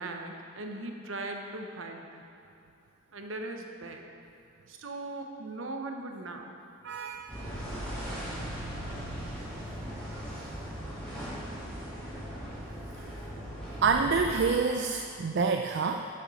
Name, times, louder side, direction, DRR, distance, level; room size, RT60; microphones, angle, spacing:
voice 1, 0.0-2.2 3.1-4.0 4.7-6.5, right 2 dB, 70° right, 3 dB, 0.9 m, -39 dB
voice 2, 6.8-7.3 13.8-16.1, right 4 dB, 55° right, 4 dB, 0.4 m, -27 dB
sound 1, 7.3-14.2, equal, 5° left, 2.4 m, -38 dB
11.0 x 7.1 x 4.1 m, 2.8 s
head